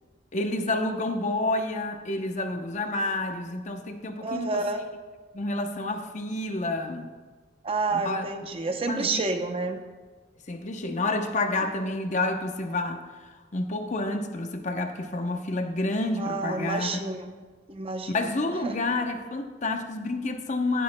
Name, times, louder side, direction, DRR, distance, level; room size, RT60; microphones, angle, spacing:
voice 1, 0.3-4.6 5.3-7.1 7.9-8.3 8.9-9.2 10.5-16.9 18.1-20.8, left 2 dB, 40° left, 6 dB, 0.8 m, -29 dB
voice 2, 4.2-4.9 7.6-9.8 11.6-11.9 16.2-17.3 17.7-18.2 18.6-18.8, right 3 dB, 30° right, 6 dB, 0.7 m, -29 dB
16.0 x 11.0 x 2.2 m, 1.4 s
head